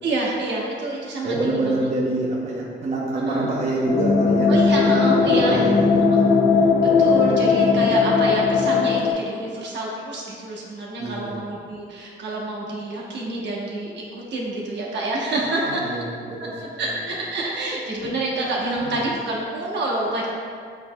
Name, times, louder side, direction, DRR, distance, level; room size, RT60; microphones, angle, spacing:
voice 1, 0.0-1.6 3.3-3.5 4.5-5.6 6.1-6.2 6.8-16.0 16.4-16.5 16.8-20.3, right 2 dB, 65° right, -3 dB, 1.0 m, -27 dB
voice 2, 1.2-4.5 4.8-4.9 5.3-6.3 7.5-7.6 11.0-11.4 15.4-16.9 18.8-18.9, right 2 dB, 35° right, -4 dB, 0.8 m, -26 dB
sound 1, 3.9-9.1, left 5 dB, 40° left, 0.5 m, -18 dB
7.6 x 2.9 x 2.2 m, 2.1 s
cardioid pair, 90°, 20 cm